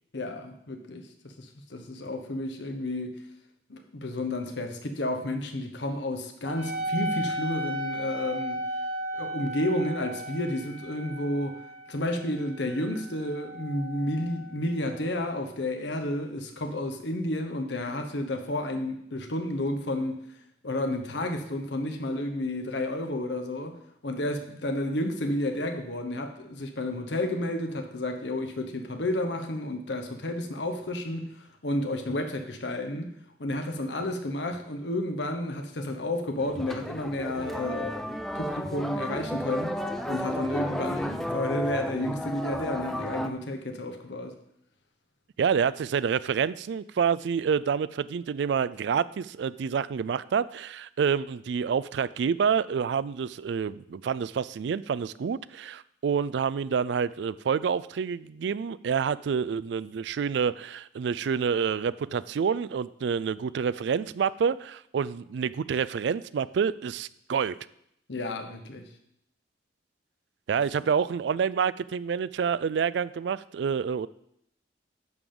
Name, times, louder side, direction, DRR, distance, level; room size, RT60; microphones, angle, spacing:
voice 1, 0.1-3.2 3.7-8.6 9.2-11.6 11.9-20.2 20.6-33.1 33.4-38.1 38.3-39.8 40.1-44.3 68.1-68.8, left 1 dB, 70° left, 5 dB, 1.0 m, -31 dB
Wind instrument woodwind instrument, 6.4-15.4, right 1 dB, 90° right, 1.8 m, -36 dB
sound 1, 36.4-43.3, equal, ahead, 0.4 m, -33 dB
voice 2, 45.4-67.6 70.5-74.1, right 6 dB, 70° right, 17 dB, 0.3 m, -28 dB
10.5 x 3.8 x 6.9 m, 0.74 s
head